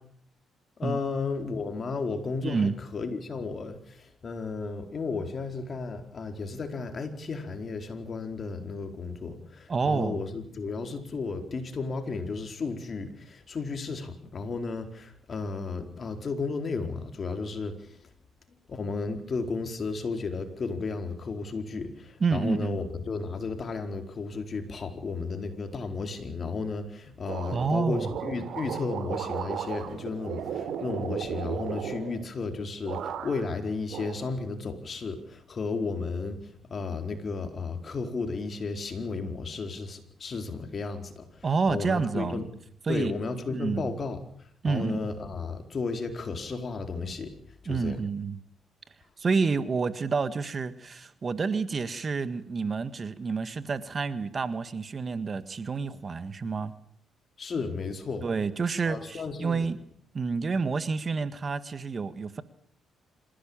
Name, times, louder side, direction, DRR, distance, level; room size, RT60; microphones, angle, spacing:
voice 1, 0.8-17.8 18.7-36.4 36.7-42.4 42.9-44.2 44.6-47.3 47.6-48.0 57.4-58.3 58.9-59.7, left 4 dB, 45° left, 6 dB, 4.4 m, -33 dB
voice 2, 2.4-2.8 9.7-10.2 22.2-22.8 27.5-28.1 41.4-42.4 42.8-43.1 43.5-43.9 44.6-45.1 47.6-48.4 49.2-56.7 58.2-59.8 60.1-62.4, right 4 dB, 40° right, 12 dB, 1.7 m, -29 dB
sound 1, 27.3-32.5 32.8-33.6 33.9-34.8, right 8 dB, 75° right, 3.2 m, -35 dB
26.5 x 16.0 x 8.9 m, 0.63 s
cardioid pair, 90°, 0 cm